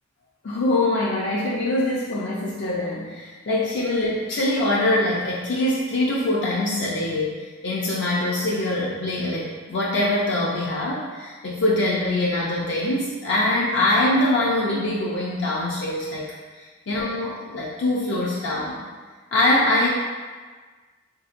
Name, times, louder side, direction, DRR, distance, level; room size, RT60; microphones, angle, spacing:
voice 1, 0.4-7.4 7.6-16.3 16.5-18.9 19.3-19.9, left 1 dB, 60° left, -5 dB, 0.4 m, -23 dB
3.5 x 2.6 x 2.4 m, 1.4 s
head